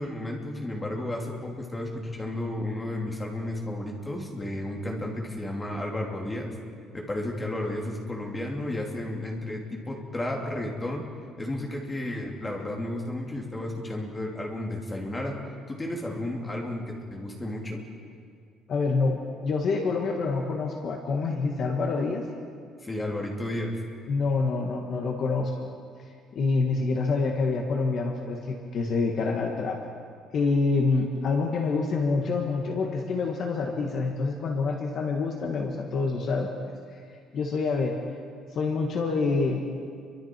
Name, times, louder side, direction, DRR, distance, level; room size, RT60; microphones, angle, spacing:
voice 1, 0.0-6.5 6.9-11.1 11.4-15.4 15.7-17.8 22.8-23.8, left 1 dB, 10° left, 0 dB, 2.7 m, -32 dB
voice 2, 18.7-22.2 24.1-25.5 26.4-29.8 30.3-36.5 37.3-38.0 38.5-39.6, left 4 dB, 40° left, 2 dB, 1.8 m, -26 dB
29.5 x 24.0 x 4.6 m, 2.1 s
cardioid pair, 180°, 0 cm